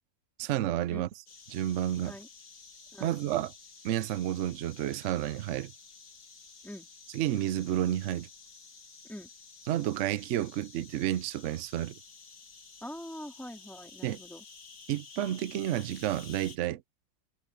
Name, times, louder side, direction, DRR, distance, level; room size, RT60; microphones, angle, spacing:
voice 1, 0.4-1.1 1.5-2.1 3.0-3.5 3.8-5.7 7.1-8.3 9.7-12.0 14.0-14.2 14.9-16.8, right 12 dB, 80° right, 0.6 m, -30 dB
sound 1, 1.3-16.6, left 5 dB, 60° left, 2.6 m, -52 dB
voice 2, 12.8-14.4, equal, ahead, 3.0 m, -44 dB
omnidirectional pair, 2.0 m